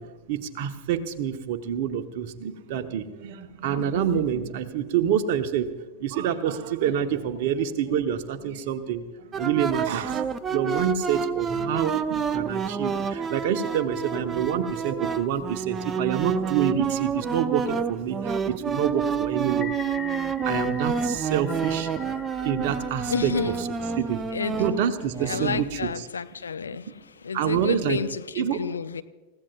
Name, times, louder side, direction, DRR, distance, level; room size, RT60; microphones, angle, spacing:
voice 1, 0.0-5.7 6.0-19.7 20.4-23.3 23.6-23.7 24.0-24.2 24.6-26.1 27.3-28.0 28.3-28.6, right 9 dB, 50° right, 9 dB, 1.1 m, -27 dB
sound 1, 9.3-25.6, right 6 dB, 20° right, 0.6 m, -29 dB
sound 2, 19.5-23.8, left 8 dB, 25° left, 1.0 m, -41 dB
voice 2, 23.1-23.5 24.3-24.6 25.2-26.9 27.2-29.0, left 6 dB, 70° left, 12 dB, 0.6 m, -30 dB
28.0 x 15.5 x 2.4 m, 1.2 s
figure-of-eight pair, 90°, 0 cm